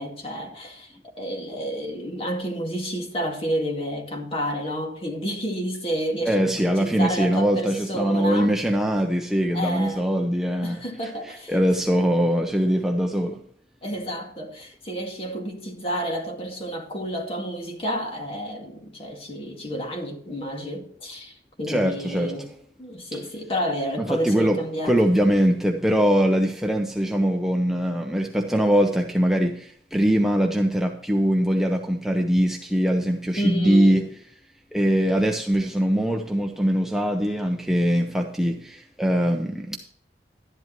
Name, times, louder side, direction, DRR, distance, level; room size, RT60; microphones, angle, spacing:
voice 1, 0.0-8.6 9.5-10.1 10.6-11.6 13.8-22.5 22.8-24.9 33.4-34.0, equal, 30° left, 2.0 m, -30 dB
voice 2, 6.2-13.4 21.7-22.5 24.0-24.6 24.8-34.0 34.7-39.8, equal, ahead, 0.6 m, -22 dB
12.0 x 11.0 x 3.0 m
head